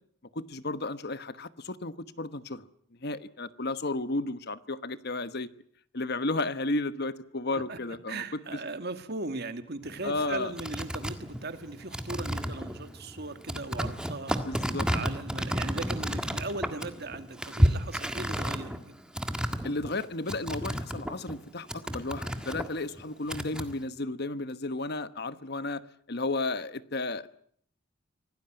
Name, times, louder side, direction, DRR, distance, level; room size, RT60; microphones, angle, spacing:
voice 1, 0.3-2.6 3.0-5.5 5.9-8.2 10.0-10.5 14.4-14.9 19.6-25.8 26.1-27.3, left 2 dB, 50° left, 13 dB, 1.2 m, -33 dB
voice 2, 8.1-19.0, right 2 dB, 55° right, 9 dB, 2.1 m, -38 dB
sound 1, 9.8-21.4 21.7-23.8, equal, 5° right, 1.7 m, -32 dB
25.5 x 18.0 x 9.0 m, 0.63 s
head